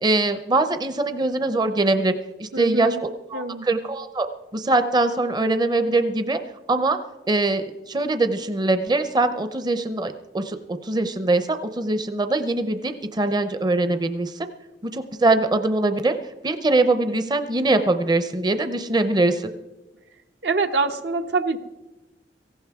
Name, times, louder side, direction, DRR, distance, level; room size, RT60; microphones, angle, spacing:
voice 1, 0.0-2.1 2.4-6.4 6.7-7.0 7.3-14.5 14.8-16.2 16.4-19.5, right 2 dB, 25° right, 9 dB, 0.6 m, -22 dB
voice 2, 2.5-3.0 3.3-3.7 20.4-21.6, right 3 dB, 70° right, 7 dB, 0.9 m, -25 dB
17.5 x 15.0 x 3.5 m, 1.0 s
head